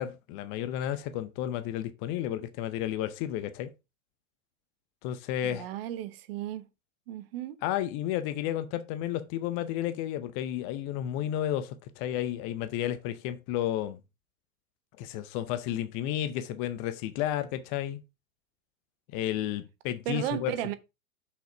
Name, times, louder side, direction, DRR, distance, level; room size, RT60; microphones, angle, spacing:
voice 1, 0.0-3.7 5.0-5.7 7.6-14.0 15.0-18.0 19.1-20.7, left 12 dB, 30° left, 0.7 m, -32 dB
voice 2, 5.4-6.7 7.1-7.6 20.1-20.7, right 12 dB, 45° right, 0.9 m, -34 dB
6.3 x 5.7 x 4.6 m
figure-of-eight pair, 100°, 43 cm